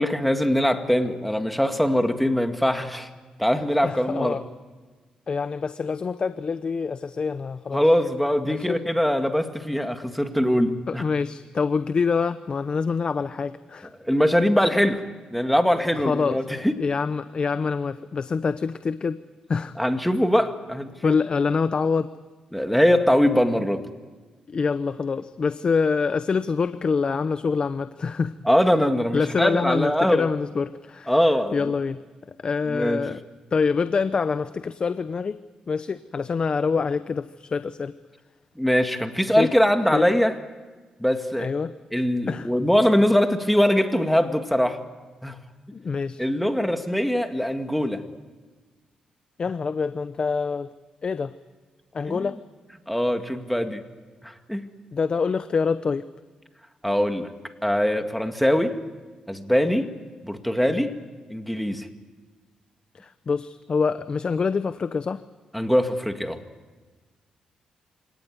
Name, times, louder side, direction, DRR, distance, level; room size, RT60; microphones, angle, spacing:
voice 1, 0.0-3.1 3.4-4.4 7.7-11.0 14.0-15.0 15.3-16.8 19.8-21.2 22.5-23.8 28.5-30.3 31.1-31.7 32.7-33.1 38.6-40.3 41.0-41.5 41.9-44.8 45.2-45.4 46.2-48.0 52.1-52.2 52.9-53.8 54.2-54.6 56.8-57.3 57.6-58.7 59.3-59.9 60.2-61.0 61.3-61.9 65.5-66.4, equal, ahead, 6 dB, 2.1 m, -22 dB
voice 2, 3.8-4.4 5.3-7.8 8.4-8.8 10.9-13.9 16.0-19.2 19.5-19.7 21.0-22.1 24.5-28.3 29.1-31.1 31.5-32.0 32.4-33.2 33.5-35.4 35.7-37.9 39.4-39.5 39.9-40.1 41.4-41.7 42.3-42.5 45.7-46.2 49.4-50.7 51.0-51.3 51.9-52.4 54.9-56.1 62.9-65.2, left 5 dB, 45° left, 13 dB, 0.7 m, -25 dB
26.0 x 18.0 x 9.6 m, 1.4 s
cardioid pair, 80°, 2 cm